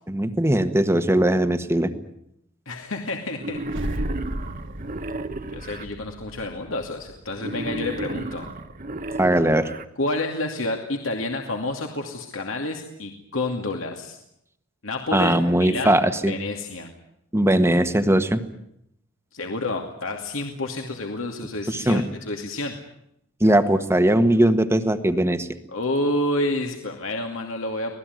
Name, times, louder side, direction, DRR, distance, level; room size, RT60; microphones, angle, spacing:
voice 1, 0.1-1.9 9.2-9.7 15.1-16.3 17.3-18.4 21.7-22.0 23.4-25.5, right 1 dB, 15° right, 10 dB, 1.5 m, -20 dB
voice 2, 2.7-3.6 5.5-8.5 10.0-14.2 14.8-16.0 16.3-16.9 19.3-22.8 25.7-27.9, left 2 dB, 70° left, 3 dB, 2.6 m, -29 dB
Wild animals, 3.4-5.9 7.4-9.9, right 2 dB, 40° right, 1.3 m, -33 dB
sound 1, 3.6-7.9, right 1 dB, 60° right, 1.6 m, -35 dB
26.0 x 18.5 x 9.5 m, 0.78 s
head